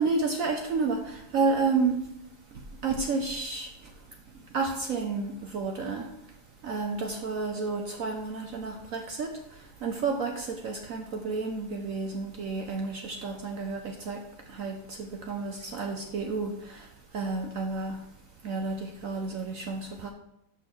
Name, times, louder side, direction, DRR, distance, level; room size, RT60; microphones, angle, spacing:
voice 1, 0.0-2.0 2.8-3.7 4.5-6.1 6.6-9.4 9.8-14.2 14.5-16.9 17.1-18.0 18.4-20.1, right 4 dB, 65° right, 3 dB, 0.8 m, -30 dB
5.8 x 5.3 x 6.1 m, 0.79 s
omnidirectional pair, 2.1 m